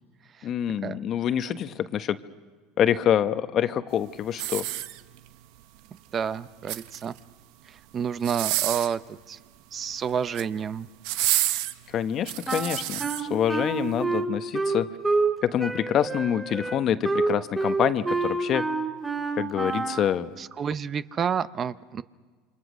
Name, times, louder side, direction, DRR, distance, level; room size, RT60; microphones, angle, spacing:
voice 1, 0.4-2.2 2.8-4.6 11.9-14.9 15.4-18.6 19.4-20.4, left 9 dB, 45° left, 11 dB, 1.1 m, -26 dB
sound 1, 4.3-5.4 6.5-7.2 8.2-9.0 10.1-10.5 11.0-13.2 13.8-13.9, right 15 dB, 70° right, 0.9 m, -29 dB
voice 2, 6.1-7.2 7.7-9.4 9.7-10.9 20.4-22.0, right 7 dB, 35° right, 14 dB, 0.7 m, -29 dB
Wind instrument woodwind instrument, 12.5-15.3 15.6-20.1, right 3 dB, 15° right, 3.4 m, -27 dB
28.5 x 25.0 x 6.3 m, 1.4 s
supercardioid pair, 95°, 0 cm